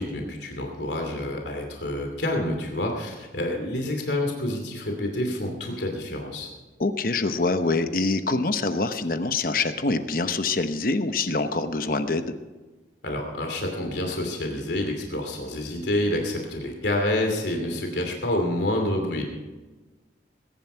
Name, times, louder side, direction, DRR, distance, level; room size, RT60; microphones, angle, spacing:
voice 1, 0.0-6.5 13.0-19.2, left 1 dB, 75° left, 2 dB, 2.8 m, -28 dB
voice 2, 6.8-12.2, left 3 dB, 50° left, 9 dB, 0.9 m, -25 dB
20.5 x 11.0 x 4.6 m, 1.2 s
head